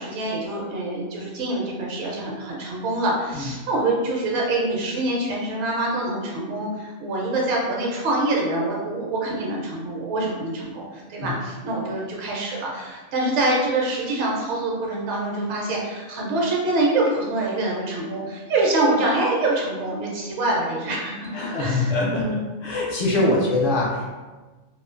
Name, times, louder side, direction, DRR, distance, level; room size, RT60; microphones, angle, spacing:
voice 1, 0.0-22.4 23.1-23.4, right 2 dB, 65° right, -3 dB, 0.9 m, -25 dB
voice 2, 21.3-22.3 22.6-24.1, left 2 dB, 60° left, -4 dB, 0.6 m, -23 dB
2.4 x 2.3 x 2.5 m, 1.3 s
omnidirectional pair, 1.4 m